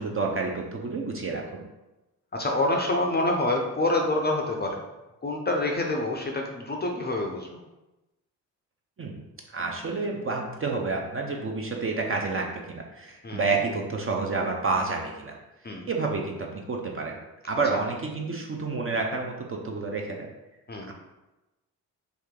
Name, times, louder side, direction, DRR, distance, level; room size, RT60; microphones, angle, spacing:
voice 1, 0.0-1.6 9.0-9.2 9.5-15.4 15.9-17.2 17.4-20.3 20.9-21.0, right 4 dB, 30° right, 1 dB, 0.6 m, -29 dB
voice 2, 2.3-4.8 5.2-7.5 13.2-13.4 15.6-15.9 17.7-17.8 20.7-20.9, left 2 dB, 20° left, 1 dB, 0.5 m, -27 dB
2.9 x 2.6 x 3.6 m, 1.0 s
hypercardioid pair, 45°, 47 cm